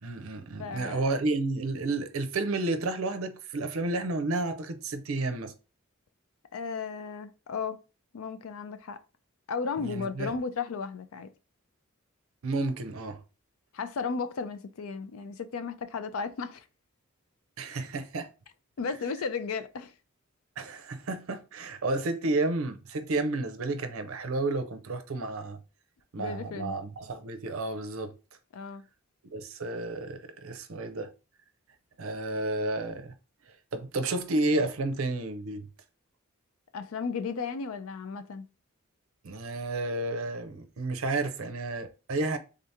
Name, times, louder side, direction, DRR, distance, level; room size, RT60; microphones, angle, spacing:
voice 1, 0.0-5.5 9.8-10.3 12.4-13.2 17.6-18.3 20.6-25.6 26.1-28.1 29.3-31.1 32.0-33.1 33.7-35.7 39.2-42.4, right 2 dB, 75° right, 0.6 m, -31 dB
voice 2, 0.6-1.0 6.5-7.8 8.1-9.0 9.5-11.3 13.7-16.6 18.8-19.9 26.2-26.7 28.5-28.8 36.7-38.5, left 5 dB, 80° left, 0.4 m, -34 dB
3.6 x 2.8 x 3.5 m
head